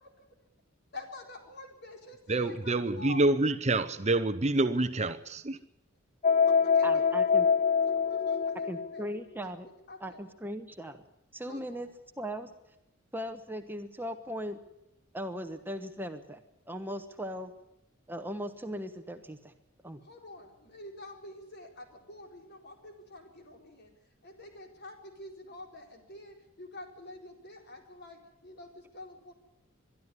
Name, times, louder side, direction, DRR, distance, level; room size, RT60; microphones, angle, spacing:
voice 1, 0.9-3.2 6.8-7.2 8.1-9.0 9.7-10.2 11.5-11.6 20.0-23.9 24.2-29.3, left 2 dB, 55° left, 4.2 m, -47 dB
voice 2, 2.3-5.6, right 2 dB, 35° right, 0.8 m, -27 dB
sound 1, 6.2-9.0, left 6 dB, 35° left, 0.7 m, -25 dB
voice 3, 6.8-7.5 8.7-9.7 10.0-11.0 11.3-12.5 13.1-14.6 15.1-17.5 18.1-19.5 19.8-20.0, equal, 10° right, 1.1 m, -38 dB
22.5 x 12.5 x 9.7 m
head